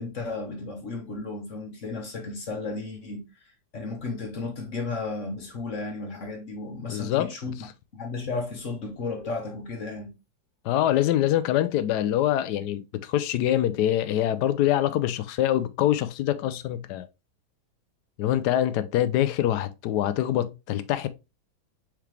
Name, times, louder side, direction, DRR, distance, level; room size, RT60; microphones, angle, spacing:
voice 1, 0.0-3.2 3.7-7.5 7.9-10.1, left 3 dB, 45° left, 1.3 m, -34 dB
voice 2, 6.9-7.3 10.6-17.1 18.2-21.1, left 12 dB, 75° left, 1.0 m, -24 dB
4.6 x 3.6 x 3.1 m
omnidirectional pair, 2.1 m